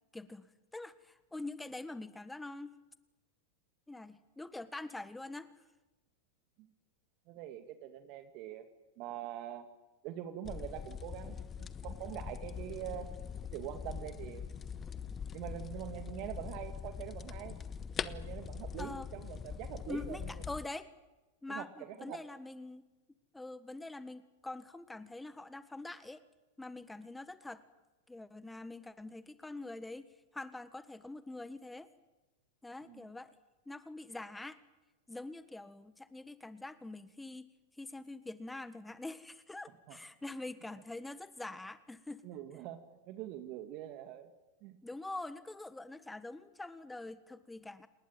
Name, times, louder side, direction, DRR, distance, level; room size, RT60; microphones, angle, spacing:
voice 1, 0.1-0.5 0.7-2.8 3.9-5.6 18.8-19.1 19.9-20.9 21.4-22.9 23.3-26.2 26.6-27.6 28.1-30.1 30.3-31.9 32.6-33.3 33.7-34.6 35.1-42.2 44.8-47.9, left 2 dB, 10° left, 13 dB, 1.5 m, -45 dB
voice 2, 7.3-8.7 9.0-9.7 10.0-13.1 13.5-14.4 15.3-17.6 18.0-20.3 21.5-22.2 32.9-33.1 39.9-40.0 42.2-42.8 43.1-44.3 44.6-44.8, right 11 dB, 50° right, 8 dB, 2.3 m, -44 dB
sound 1, 10.4-20.7, left 7 dB, 25° left, 1.3 m, -43 dB
29.0 x 20.0 x 9.2 m, 1.1 s
hypercardioid pair, 95°, 0 cm